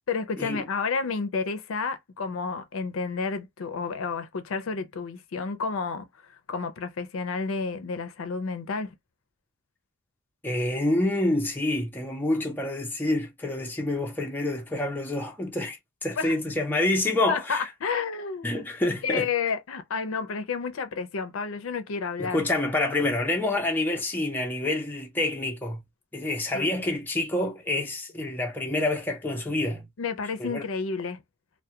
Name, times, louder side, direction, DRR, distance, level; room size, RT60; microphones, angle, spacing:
voice 1, 0.1-8.9 16.2-16.3 17.3-18.6 19.0-22.4 26.5-26.7 30.0-31.2, left 5 dB, 75° left, 0.4 m, -31 dB
voice 2, 10.4-17.6 18.4-19.3 22.2-25.8 26.1-29.9 30.4-30.6, left 2 dB, 10° left, 0.5 m, -27 dB
2.2 x 2.1 x 2.7 m
head